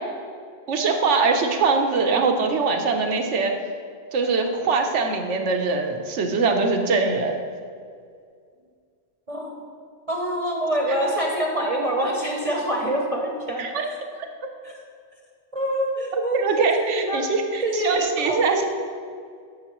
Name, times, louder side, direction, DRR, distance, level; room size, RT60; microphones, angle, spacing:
voice 1, 0.7-3.5 4.1-7.4 13.6-13.8 16.3-18.7, right 4 dB, 80° right, 4 dB, 1.2 m, -22 dB
voice 2, 9.3-9.6 10.1-13.9 14.6-14.8 15.5-17.2 17.6-18.7, right 1 dB, 35° right, -1 dB, 0.9 m, -25 dB
12.5 x 6.6 x 3.0 m, 2.2 s
omnidirectional pair, 1.2 m